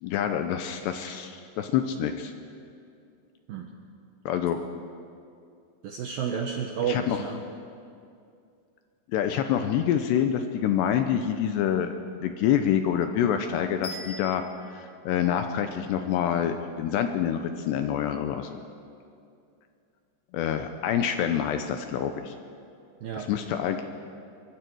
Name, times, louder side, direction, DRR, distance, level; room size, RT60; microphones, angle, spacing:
voice 1, 0.0-2.3 4.3-4.6 6.9-7.2 9.1-11.9 12.2-14.4 14.7-18.6 20.3-22.3 23.2-23.8, left 9 dB, 80° left, 7 dB, 2.6 m, -26 dB
voice 2, 5.8-7.4 23.0-23.3, right 7 dB, 80° right, 2 dB, 2.1 m, -31 dB
sound 1, 13.8-15.9, left 1 dB, 40° left, 5.6 m, -42 dB
23.5 x 23.5 x 4.7 m, 2.4 s
omnidirectional pair, 5.6 m